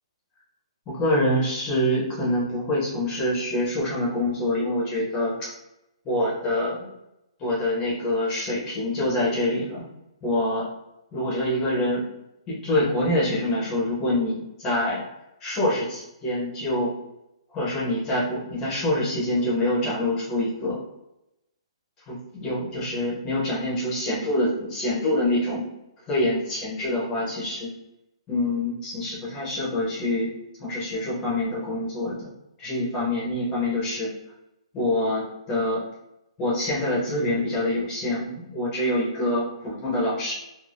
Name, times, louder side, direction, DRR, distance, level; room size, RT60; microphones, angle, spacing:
voice 1, 0.9-5.5 6.1-6.9 7.4-9.8 10.2-10.7 11.1-12.0 12.5-15.0 15.4-16.9 17.5-20.8 22.1-25.7 26.1-27.7 28.3-30.3 30.6-32.3 32.6-34.1 34.7-35.8 36.4-40.3, left 1 dB, 10° left, -5 dB, 0.5 m, -25 dB
2.4 x 2.2 x 3.2 m, 0.88 s
hypercardioid pair, 180°, 3 cm